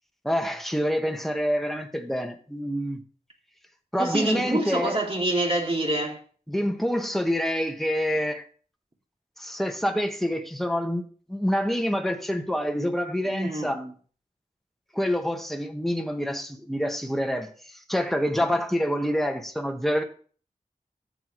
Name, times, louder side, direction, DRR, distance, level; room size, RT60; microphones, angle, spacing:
voice 1, 0.2-3.0 3.9-5.0 6.5-8.4 9.4-11.0 11.3-13.8 14.9-20.0, equal, ahead, 1.6 m, -27 dB
voice 2, 4.0-6.2 13.3-13.9, right 1 dB, 40° right, 2.9 m, -27 dB
13.5 x 8.1 x 3.3 m
wide cardioid pair, 60°, 15 cm